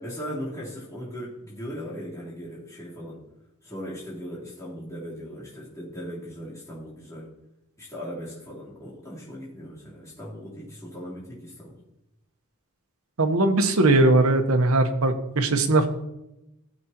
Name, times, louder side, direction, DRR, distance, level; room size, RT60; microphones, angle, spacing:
voice 1, 0.0-3.2 3.6-7.3 7.8-11.7, equal, 15° left, -9 dB, 3.6 m, -38 dB
voice 2, 13.2-15.9, right 2 dB, 80° right, 7 dB, 1.1 m, -20 dB
16.0 x 7.8 x 3.0 m, 0.90 s
head